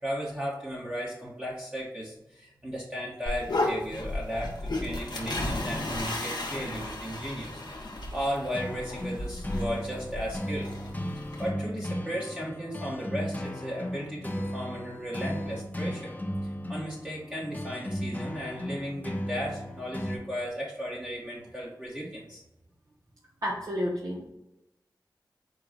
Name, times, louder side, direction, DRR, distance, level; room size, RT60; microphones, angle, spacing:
voice 1, 0.0-7.6 8.1-10.7 11.4-16.1 16.4-22.4, equal, 15° right, -6 dB, 1.1 m, -35 dB
sound 1, 3.3-11.5, left 2 dB, 70° left, 0.9 m, -34 dB
sound 2, 8.5-20.2, equal, 20° left, 0.7 m, -35 dB
voice 2, 23.4-24.3, equal, 50° right, -6 dB, 0.9 m, -31 dB
4.6 x 2.2 x 3.9 m, 0.93 s
wide cardioid pair, 50°, 8 cm